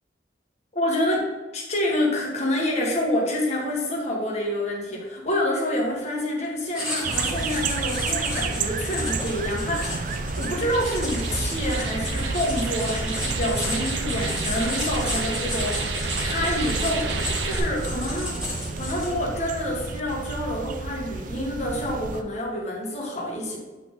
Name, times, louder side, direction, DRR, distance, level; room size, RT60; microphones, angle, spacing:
voice 1, 0.7-1.2 1.5-18.4 18.8-23.6, left 1 dB, 40° left, -2 dB, 1.7 m, -27 dB
Writing, 6.7-19.3, left 1 dB, 5° right, 2.1 m, -33 dB
sound 1, 7.0-22.2, right 3 dB, 50° right, 0.5 m, -31 dB
sound 2, 10.5-17.6, right 3 dB, 85° right, 0.8 m, -32 dB
8.1 x 4.3 x 3.8 m, 1.2 s
head